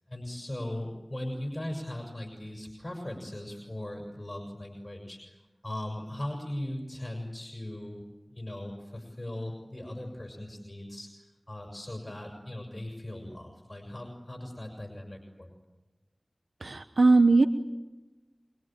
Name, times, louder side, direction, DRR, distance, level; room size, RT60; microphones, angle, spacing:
voice 1, 0.1-8.0 8.3-15.5, left 1 dB, 30° left, 2 dB, 6.4 m, -39 dB
voice 2, 16.6-17.5, right 3 dB, 75° right, 9 dB, 1.1 m, -20 dB
26.0 x 24.0 x 9.1 m, 1.1 s
wide cardioid pair, 40°, 0 cm